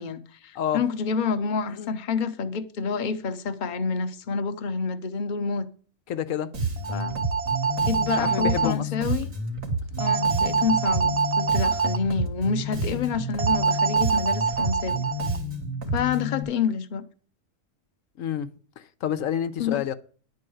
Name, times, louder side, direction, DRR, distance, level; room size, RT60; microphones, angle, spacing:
voice 1, 0.0-5.7 6.9-7.2 7.8-9.3 10.0-15.0 15.9-17.0 19.6-19.8, left 5 dB, 40° left, 0.9 m, -28 dB
voice 2, 6.1-6.5 8.1-8.8 18.2-18.5 19.0-19.9, left 9 dB, 85° left, 1.1 m, -28 dB
Bass guitar, 6.5-16.4, right 1 dB, 90° right, 2.8 m, -30 dB
sound 1, 6.8-8.7 10.0-12.0 13.4-15.4, right 6 dB, 40° right, 0.5 m, -25 dB
11.0 x 4.7 x 7.8 m
omnidirectional pair, 1.4 m